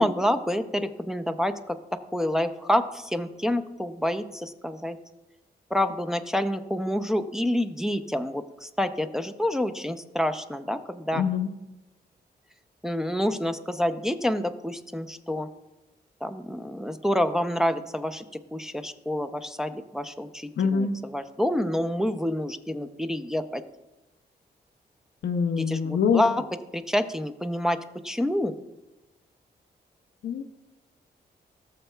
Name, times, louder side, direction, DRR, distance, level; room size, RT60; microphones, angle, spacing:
voice 1, 0.0-5.0 5.7-11.2 12.8-15.5 16.2-18.2 18.5-23.6 25.6-26.4 26.7-28.5, left 1 dB, 5° right, 8 dB, 0.5 m, -28 dB
voice 2, 11.2-11.5 20.6-20.9 25.2-26.3 30.2-30.4, left 6 dB, 75° left, 9 dB, 0.6 m, -24 dB
15.0 x 6.6 x 2.3 m, 1.0 s
cardioid pair, 70°, 18 cm